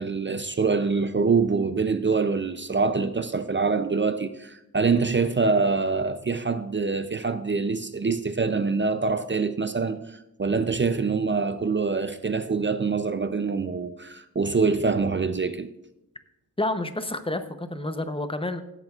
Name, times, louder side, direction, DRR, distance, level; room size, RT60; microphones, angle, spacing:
voice 1, 0.0-15.7, right 4 dB, 30° right, 0.5 m, -25 dB
voice 2, 16.6-18.6, left 2 dB, 15° left, 0.7 m, -29 dB
16.0 x 9.0 x 2.4 m
wide cardioid pair, 110°, 37 cm